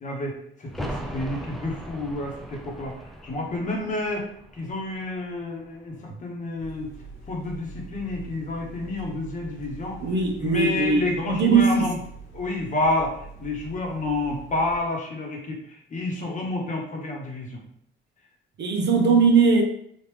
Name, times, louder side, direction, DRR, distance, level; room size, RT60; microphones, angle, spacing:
voice 1, 0.0-2.9 3.2-4.3 4.6-6.9 7.3-10.0 10.4-12.0 12.3-17.6, left 2 dB, 35° left, -1 dB, 0.9 m, -29 dB
sound 1, 0.6-6.2 6.5-6.6, equal, ahead, 0.4 m, -39 dB
sound 2, 6.6-14.8, right 4 dB, 85° left, 1.1 m, -43 dB
voice 2, 10.0-11.9 18.6-19.6, right 4 dB, 55° right, 2 dB, 0.7 m, -20 dB
3.1 x 2.4 x 3.4 m, 0.68 s
cardioid pair, 115°, 21 cm